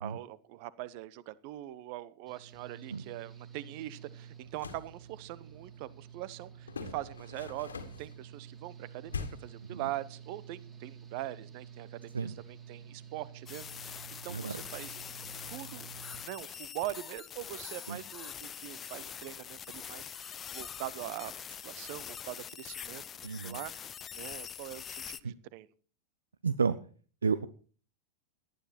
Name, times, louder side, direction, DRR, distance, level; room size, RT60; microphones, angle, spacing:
voice 1, 0.0-7.7 8.0-15.1 15.5-15.9 16.2-23.7 24.1-25.7, right 15 dB, 45° right, 20 dB, 1.0 m, -42 dB
Engine / Mechanical fan, 2.3-16.2, right 7 dB, 20° right, 3.5 m, -50 dB
sound 1, 4.4-4.9 6.7-8.1 9.1-9.6, left 5 dB, 70° left, 1.9 m, -41 dB
sound 2, 13.5-25.2, left 8 dB, 25° left, 0.7 m, -44 dB
voice 2, 14.3-14.6 17.9-18.0 23.2-23.6 25.2-25.3 26.4-26.8 27.2-27.5, right 5 dB, 75° right, 16 dB, 0.7 m, -31 dB
18.0 x 12.0 x 4.4 m, 0.40 s
figure-of-eight pair, 90°, 0 cm